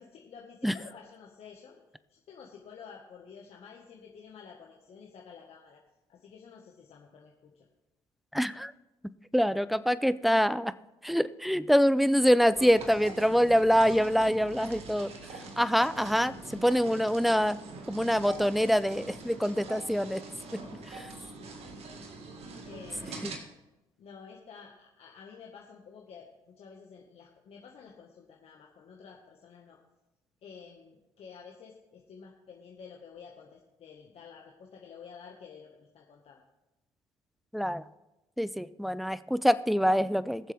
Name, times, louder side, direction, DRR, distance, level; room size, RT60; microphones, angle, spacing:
voice 1, 0.0-1.8 2.1-5.8 6.1-7.7 20.3-21.1 21.4-22.0 22.5-23.3 24.0-29.8 30.4-36.4, left 6 dB, 60° left, -1 dB, 1.7 m, -51 dB
voice 2, 8.3-8.7 9.3-10.7 11.0-15.1 15.6-16.3 16.6-17.6 17.9-20.2 20.9-21.1 23.2-23.3 37.5-37.8 38.4-40.5, equal, ahead, 15 dB, 0.6 m, -25 dB
sound 1, 12.5-23.4, right 3 dB, 60° right, 1.9 m, -44 dB
21.0 x 7.4 x 3.6 m, 0.99 s
hypercardioid pair, 60°, 12 cm